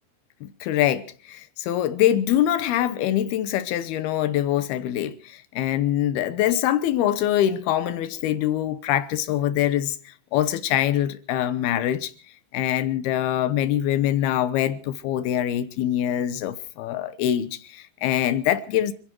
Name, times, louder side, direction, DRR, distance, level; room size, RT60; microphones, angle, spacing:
voice 1, 0.4-10.0 10.3-12.1 12.5-18.9, left 11 dB, 75° left, 2.4 m, -24 dB
29.0 x 11.0 x 4.5 m
omnidirectional pair, 5.4 m